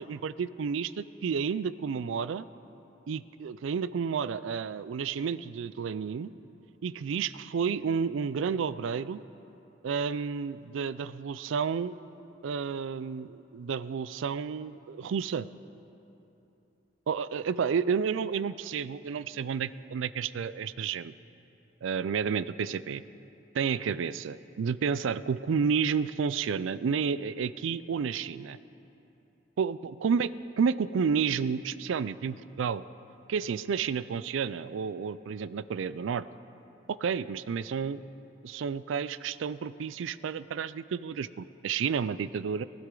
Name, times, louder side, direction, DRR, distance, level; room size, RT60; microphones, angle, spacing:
voice 1, 0.0-2.4 3.1-6.3 6.8-9.2 9.8-12.0 12.4-15.5 17.1-21.1 21.8-23.0 23.5-28.6 29.6-32.8 33.3-36.3 36.9-38.0 38.4-42.7, right 6 dB, 80° right, 16 dB, 0.4 m, -31 dB
19.5 x 12.5 x 3.8 m, 3.0 s
head